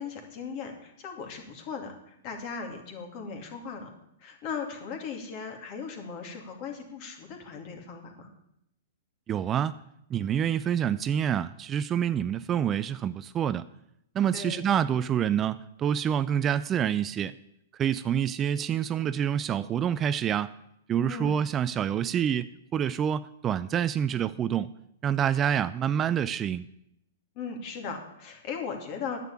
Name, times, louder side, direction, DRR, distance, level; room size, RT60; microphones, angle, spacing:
voice 1, 0.0-3.9 4.2-8.3 14.3-14.6 21.1-21.4 27.4-29.2, left 5 dB, 45° left, 2.6 m, -38 dB
voice 2, 9.3-9.7 10.1-13.7 14.1-17.3 17.8-20.5 20.9-24.7 25.0-26.6, right 9 dB, 25° right, 0.4 m, -27 dB
10.0 x 7.6 x 8.3 m
hypercardioid pair, 110°, 0 cm